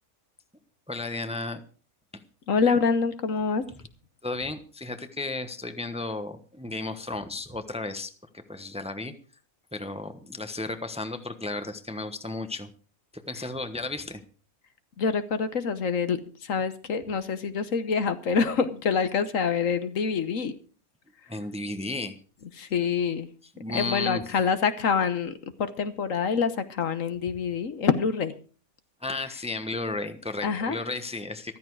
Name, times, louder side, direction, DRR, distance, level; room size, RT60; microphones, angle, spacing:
voice 1, 0.9-1.6 2.1-2.2 4.2-8.1 8.5-9.1 9.7-12.7 13.3-14.2 21.3-22.1 23.5-24.3 29.0-31.6, left 2 dB, 5° right, 9 dB, 1.0 m, -33 dB
voice 2, 2.5-3.6 15.0-20.5 22.6-23.3 23.7-28.3 30.4-30.8, left 5 dB, 65° left, 11 dB, 1.4 m, -26 dB
14.0 x 13.5 x 4.7 m, 0.40 s
omnidirectional pair, 1.5 m